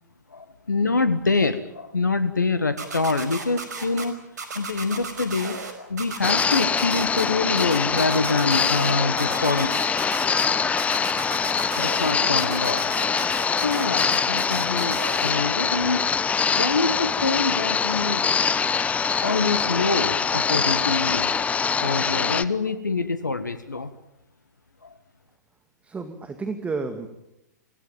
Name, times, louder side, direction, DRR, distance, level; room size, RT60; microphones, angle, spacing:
voice 1, 0.3-4.2 4.5-9.7 11.8-13.0 13.6-16.0 16.5-21.3 21.8-23.9 24.8-24.9, left 3 dB, 90° left, 11 dB, 1.6 m, -25 dB
sound 1, 2.8-4.0 4.4-5.7 6.0-7.2 7.6-8.9 9.2-10.4 10.8-12.1 12.4-15.3, right 4 dB, 70° right, 5.3 m, -34 dB
sound 2, 6.2-22.4, left 6 dB, 15° left, 0.8 m, -24 dB
voice 2, 25.8-27.1, right 4 dB, 15° right, 7 dB, 2.1 m, -31 dB
25.0 x 17.5 x 8.9 m, 0.87 s
figure-of-eight pair, 110°, 10 cm